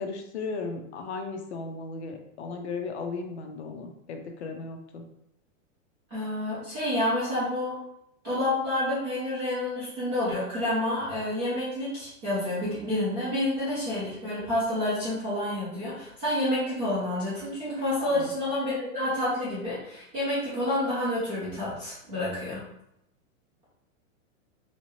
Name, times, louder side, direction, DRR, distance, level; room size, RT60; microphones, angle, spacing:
voice 1, 0.0-5.1 18.0-18.3, left 4 dB, 55° left, 4 dB, 0.6 m, -36 dB
voice 2, 6.1-7.7 8.2-22.6, left 1 dB, 15° right, -11 dB, 0.5 m, -29 dB
3.3 x 2.8 x 3.0 m, 0.80 s
supercardioid pair, 180°, 41 cm